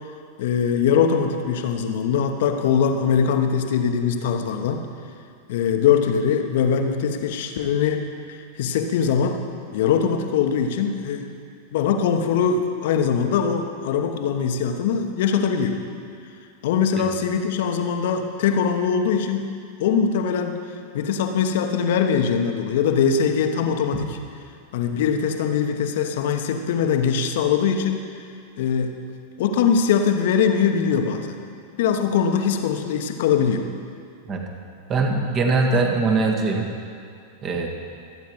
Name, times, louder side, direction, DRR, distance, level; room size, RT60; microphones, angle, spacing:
voice 1, 0.4-4.9 5.5-8.0 8.3-9.4 9.7-11.3 11.7-15.8 16.6-19.5 19.8-20.6 20.9-24.2 24.7-28.1 28.6-28.9 29.4-31.4 31.8-33.7, left 7 dB, 55° left, 5 dB, 1.0 m, -22 dB
voice 2, 34.9-36.7 37.4-37.7, right 3 dB, 30° right, 2 dB, 1.7 m, -21 dB
24.0 x 9.3 x 3.1 m, 2.3 s
figure-of-eight pair, 90°, 0 cm